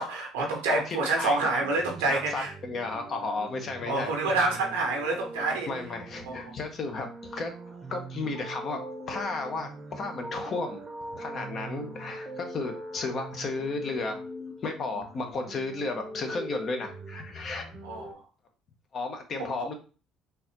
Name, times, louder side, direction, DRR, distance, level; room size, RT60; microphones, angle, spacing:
voice 1, 0.0-2.5 3.9-5.7 6.2-6.4 17.8-18.2 19.4-19.5, right 2 dB, 85° right, 1 dB, 1.0 m, -27 dB
voice 2, 0.6-1.6 2.1-4.1 5.7-7.5 7.9-8.8 9.1-10.8 11.1-14.2 14.6-17.7 18.9-19.7, left 3 dB, 50° left, 4 dB, 0.9 m, -33 dB
sound 1, 1.6-18.1, right 1 dB, 30° right, 0.8 m, -42 dB
3.9 x 2.7 x 2.8 m, 0.35 s
hypercardioid pair, 65°, 0 cm